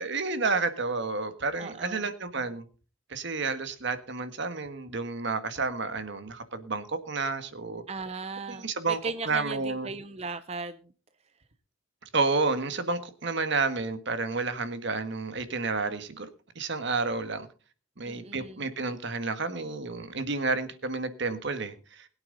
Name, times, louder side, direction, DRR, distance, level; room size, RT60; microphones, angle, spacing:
voice 1, 0.0-2.6 3.1-7.8 8.5-9.0 9.2-9.9 12.1-16.3 16.5-17.5 18.0-22.1, right 3 dB, 60° right, 10 dB, 1.6 m, -30 dB
voice 2, 1.6-2.1 7.9-10.9 18.0-18.7, right 4 dB, 30° right, 12 dB, 0.6 m, -37 dB
21.0 x 9.0 x 3.9 m, 0.37 s
head